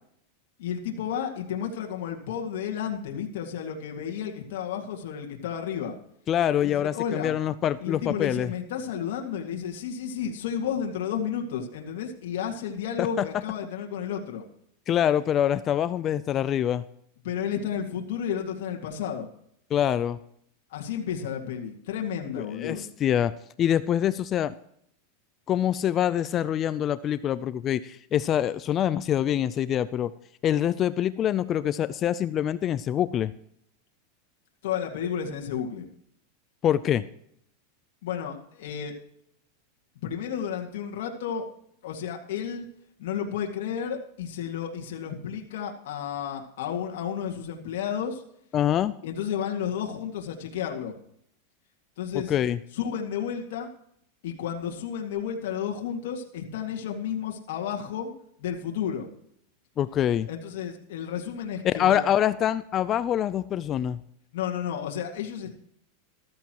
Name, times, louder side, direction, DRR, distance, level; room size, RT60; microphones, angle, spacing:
voice 1, 0.6-6.0 6.6-7.3 7.8-14.4 17.2-19.3 20.7-22.8 34.6-35.9 38.0-38.9 40.0-41.4 41.8-42.6 43.0-48.2 49.0-51.0 52.0-52.3 52.7-53.7 54.2-58.1 58.4-59.1 60.3-62.0 64.3-65.5, left 8 dB, 70° left, 2 dB, 2.1 m, -32 dB
voice 2, 6.3-8.5 13.0-13.3 14.9-16.8 19.7-20.2 22.5-23.3 23.6-24.5 25.5-30.1 30.4-33.3 36.6-37.1 48.5-49.0 52.3-52.6 59.8-60.3 61.6-64.0, left 10 dB, 30° left, 15 dB, 0.5 m, -25 dB
14.0 x 14.0 x 3.0 m, 0.70 s
supercardioid pair, 135°, 0 cm